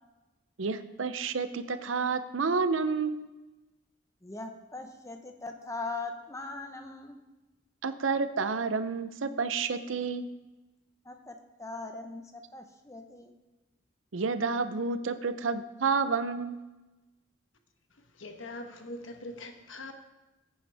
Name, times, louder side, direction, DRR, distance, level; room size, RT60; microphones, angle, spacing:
voice 1, 0.6-3.3 7.8-10.3 14.1-16.6, right 4 dB, 90° right, 0.7 m, -30 dB
voice 2, 4.2-7.2 11.0-13.3, left 3 dB, 15° left, 0.9 m, -40 dB
voice 3, 18.2-19.9, left 2 dB, 85° left, 1.2 m, -42 dB
15.0 x 8.8 x 3.5 m
head